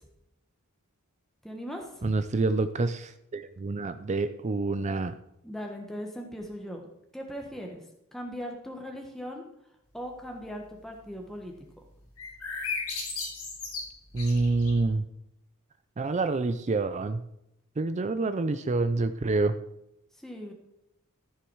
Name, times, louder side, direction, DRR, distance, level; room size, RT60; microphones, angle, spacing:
voice 1, 1.4-2.1 5.4-6.8 7.1-7.8 8.1-9.4 9.9-11.5 20.2-20.5, equal, ahead, 1 dB, 1.2 m, -39 dB
voice 2, 2.0-5.1 14.1-15.0 16.0-17.2 17.8-19.5, right 3 dB, 30° right, 11 dB, 0.5 m, -27 dB
sound 1, 12.2-14.9, left 4 dB, 85° left, 4.5 m, -35 dB
14.0 x 7.0 x 4.7 m, 0.82 s
head